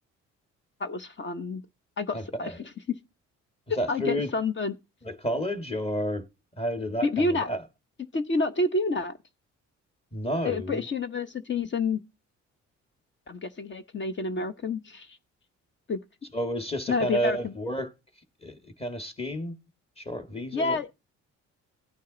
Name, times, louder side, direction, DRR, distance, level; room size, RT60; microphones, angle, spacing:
voice 1, 0.8-1.6 2.0-2.5 3.9-4.8 7.0-7.5 8.1-9.2 10.4-12.0 13.3-15.2 15.9-16.0 16.9-17.5 20.5-20.9, left 3 dB, 40° left, 1.1 m, -28 dB
voice 2, 2.1-2.6 3.8-4.3 5.0-6.2 6.6-7.6 10.1-10.8 16.3-17.9 18.4-19.5 20.0-20.8, equal, 20° left, 1.8 m, -31 dB
15.5 x 9.2 x 4.0 m
cardioid pair, 90°, 30 cm